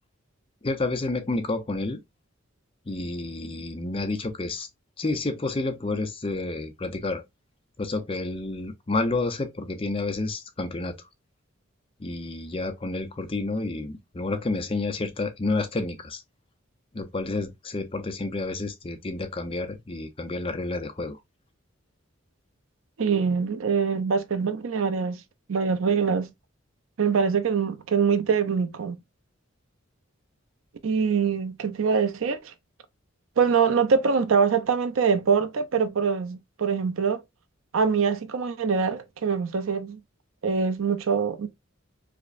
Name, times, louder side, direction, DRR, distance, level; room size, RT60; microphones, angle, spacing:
voice 1, 0.6-2.0 2.9-4.7 5.0-7.2 7.8-11.0 12.0-16.2 16.9-21.2, left 2 dB, 25° left, 0.5 m, -30 dB
voice 2, 23.0-25.2 25.5-26.3 27.0-29.0 30.8-32.5 33.4-37.2 37.7-40.0 40.4-41.5, right 6 dB, 80° right, 0.5 m, -24 dB
4.9 x 2.1 x 2.5 m
head